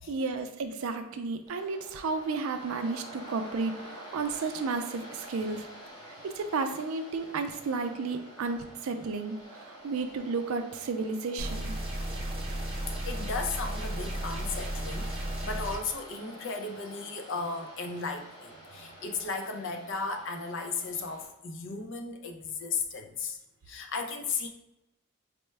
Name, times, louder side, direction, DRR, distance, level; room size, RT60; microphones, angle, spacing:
voice 1, 0.1-5.7 6.1-11.7, right 4 dB, 75° right, 7 dB, 0.4 m, -33 dB
Waves surf, 1.5-21.3, right 1 dB, 20° left, 0.7 m, -48 dB
sound 1, 11.4-15.8, right 1 dB, 25° right, 0.6 m, -34 dB
voice 2, 13.0-23.4 23.7-24.5, left 4 dB, 60° left, 4 dB, 0.5 m, -35 dB
4.2 x 2.2 x 3.2 m, 0.90 s
head